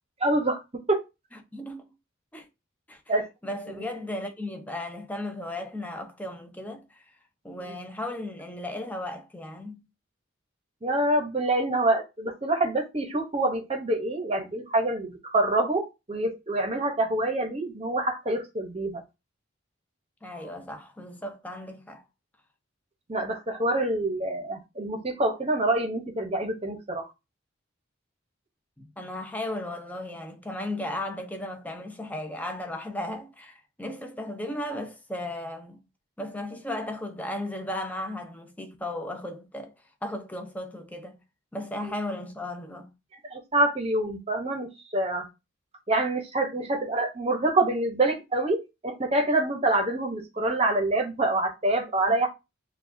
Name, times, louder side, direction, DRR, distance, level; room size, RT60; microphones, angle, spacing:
voice 1, 0.2-0.6 0.9-1.0 3.1-3.3 3.7-3.8 7.7-7.8 10.8-19.0 23.1-27.1 41.8-41.9 43.2-44.7 44.9-45.3 45.9-52.3, right 2 dB, 30° right, 0.8 m, -26 dB
voice 2, 1.5-1.9 2.3-2.5 2.9-3.0 3.4-7.0 7.4-9.8 20.2-22.0 28.8-35.8 36.2-39.7 40.0-41.2 41.5-42.9 52.1-52.2, left 1 dB, 10° left, 0.6 m, -35 dB
7.0 x 2.4 x 2.6 m
head